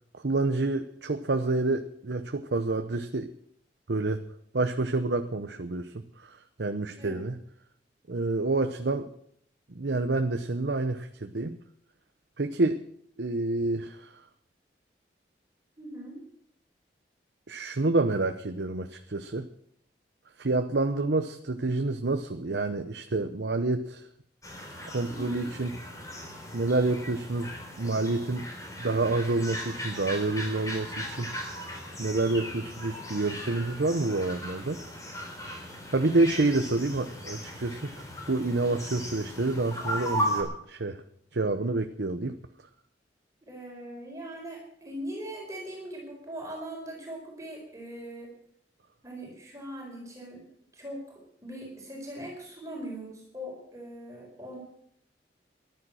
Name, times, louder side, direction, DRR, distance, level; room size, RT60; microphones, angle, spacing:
voice 1, 0.1-3.3 3.9-4.3 4.5-7.4 8.1-9.1 9.7-11.6 12.4-12.8 13.2-14.2 17.5-19.5 20.4-24.1 24.6-24.7 24.9-25.7 26.5-28.5 28.8-31.3 32.0-34.8 35.9-41.0 41.3-42.3, right 2 dB, 70° right, 7 dB, 0.8 m, -28 dB
voice 2, 15.8-16.2 25.0-25.5 43.4-48.3 49.0-50.4 50.7-54.6, right 1 dB, 20° right, -1 dB, 4.6 m, -41 dB
sound 1, 24.4-40.4, equal, 20° left, 3.4 m, -37 dB
14.0 x 11.5 x 6.3 m, 0.69 s
head